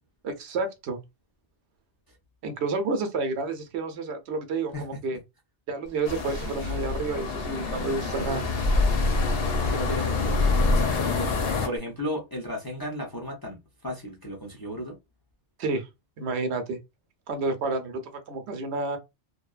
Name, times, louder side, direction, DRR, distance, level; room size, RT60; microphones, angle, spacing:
voice 1, 0.2-1.0 2.4-5.2 5.7-8.5 15.6-15.9 16.2-16.8 17.3-19.0, right 3 dB, 75° right, 0.8 m, -30 dB
Engine / Mechanisms, 5.8-11.8, right 1 dB, 50° right, 0.5 m, -40 dB
sound 1, 6.0-11.7, left 3 dB, 65° left, 0.8 m, -26 dB
voice 2, 9.7-11.4 11.6-13.6 13.8-14.9, equal, 30° left, 0.5 m, -34 dB
2.6 x 2.1 x 2.3 m
omnidirectional pair, 1.2 m